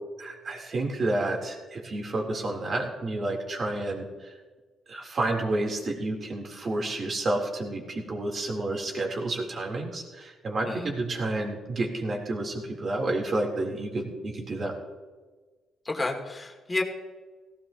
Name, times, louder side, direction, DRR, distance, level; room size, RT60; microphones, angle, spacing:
voice 1, 0.2-4.3 4.9-14.7, right 2 dB, 45° right, 0 dB, 3.7 m, -30 dB
voice 2, 15.8-16.8, left 2 dB, 20° left, 1 dB, 2.6 m, -30 dB
17.5 x 17.0 x 3.0 m, 1.3 s
cardioid pair, 90°, 0 cm